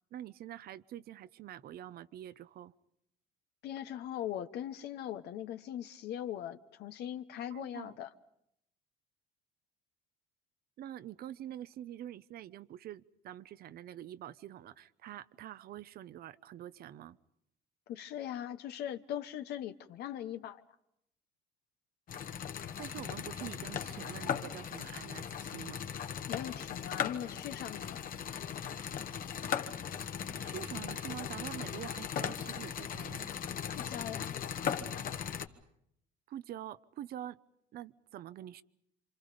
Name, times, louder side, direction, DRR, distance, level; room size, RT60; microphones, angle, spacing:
voice 1, 0.1-2.7 7.5-8.0 10.8-17.2 22.8-25.8 30.4-33.3 36.3-37.4 37.7-38.6, right 12 dB, 65° right, 0.9 m, -46 dB
voice 2, 3.6-8.1 17.9-20.6 26.3-28.0 33.7-34.4, left 11 dB, 75° left, 1.2 m, -40 dB
sound 1, 22.1-35.5, left 8 dB, 55° left, 1.5 m, -38 dB
28.5 x 26.5 x 5.2 m
cardioid pair, 110°, 17 cm